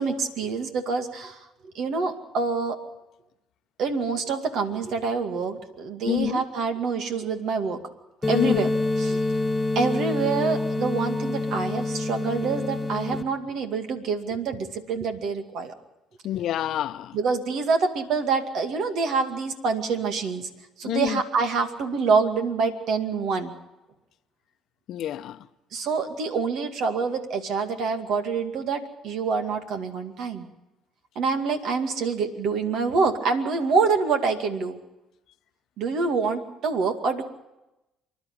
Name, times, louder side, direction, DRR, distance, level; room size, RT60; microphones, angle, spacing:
voice 1, 0.0-1.4 1.7-2.8 3.8-7.8 8.2-8.7 9.0-9.2 9.8-15.7 17.1-20.5 20.8-23.5 25.7-30.5 31.2-34.8 35.8-37.2, right 4 dB, 65° right, 2.3 m, -26 dB
voice 2, 6.1-6.4 8.3-8.7 16.2-17.2 20.8-21.2 24.9-25.5, left 12 dB, 65° left, 0.8 m, -27 dB
sound 1, 8.2-13.2, left 2 dB, 20° left, 1.6 m, -26 dB
26.5 x 11.5 x 9.8 m
hypercardioid pair, 60°, 0 cm